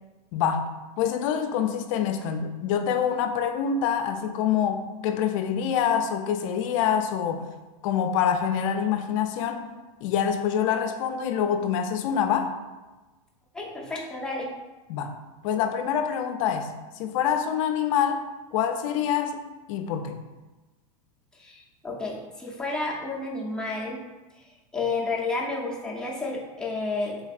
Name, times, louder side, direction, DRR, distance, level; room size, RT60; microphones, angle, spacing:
voice 1, 0.3-0.7 1.0-7.4 7.8-9.7 10.0-12.6 14.9-15.2 15.4-18.2 18.5-19.4 19.7-20.2, left 8 dB, 60° left, 7 dB, 0.4 m, -26 dB
voice 2, 13.5-14.5 21.3-24.0 24.3-27.2, left 3 dB, 5° left, -4 dB, 0.6 m, -31 dB
3.4 x 3.3 x 2.4 m, 1.2 s
supercardioid pair, 125°, 19 cm